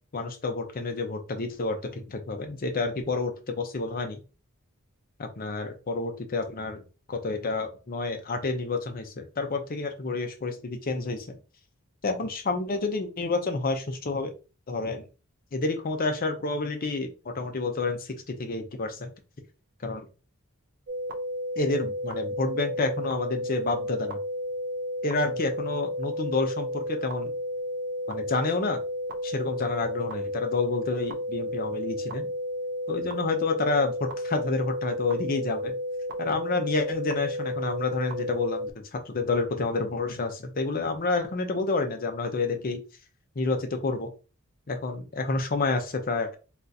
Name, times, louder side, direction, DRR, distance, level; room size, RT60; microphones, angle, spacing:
voice 1, 0.1-4.2 5.2-6.8 7.1-11.4 12.0-14.3 14.7-15.1 15.5-19.1 19.8-20.1 21.6-24.2 25.0-27.3 28.1-28.8 29.2-32.3 32.9-35.8 36.2-42.8 43.4-44.1 44.7-46.3, left 3 dB, 45° left, 6 dB, 0.6 m, -29 dB
sound 1, 20.9-38.7, equal, 55° right, 0.4 m, -32 dB
3.5 x 2.4 x 2.7 m, 0.33 s
head